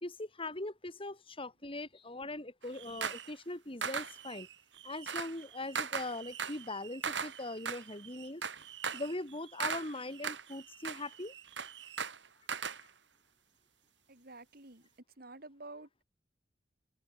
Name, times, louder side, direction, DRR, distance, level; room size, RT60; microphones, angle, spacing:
voice 1, 0.0-4.5 4.8-8.5 8.9-11.3, left 2 dB, 30° left, 3.5 m, -41 dB
sound 1, 2.6-3.3 3.8-12.8, right 6 dB, 85° right, 4.7 m, -40 dB
voice 2, 14.1-14.9 15.2-16.0, right 2 dB, 55° right, 4.3 m, -50 dB
head